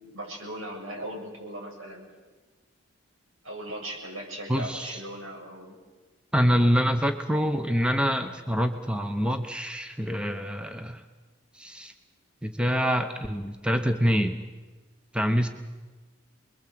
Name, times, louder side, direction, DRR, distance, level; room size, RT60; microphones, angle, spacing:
voice 1, 0.0-2.1 3.4-5.7, right 1 dB, 85° right, 0 dB, 7.5 m, -38 dB
voice 2, 4.5-5.0 6.3-11.0 11.5-11.9 12.4-14.4 15.1-15.5, equal, 5° right, 7 dB, 1.0 m, -25 dB
27.5 x 21.5 x 7.8 m, 1.3 s
head